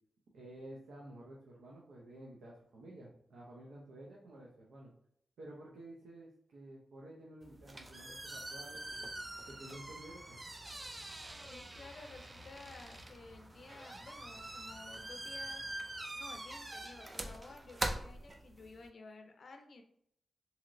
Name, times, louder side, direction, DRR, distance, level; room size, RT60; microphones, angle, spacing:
voice 1, 0.3-4.9 5.4-9.1 9.5-10.4, right 1 dB, 90° right, -3 dB, 0.6 m, -52 dB
sound 1, 7.4-18.9, right 1 dB, 25° right, 0.3 m, -44 dB
voice 2, 11.4-15.7 16.1-19.8, left 3 dB, 60° left, 4 dB, 0.4 m, -53 dB
2.9 x 2.7 x 2.5 m, 0.68 s
cardioid pair, 85°, 0 cm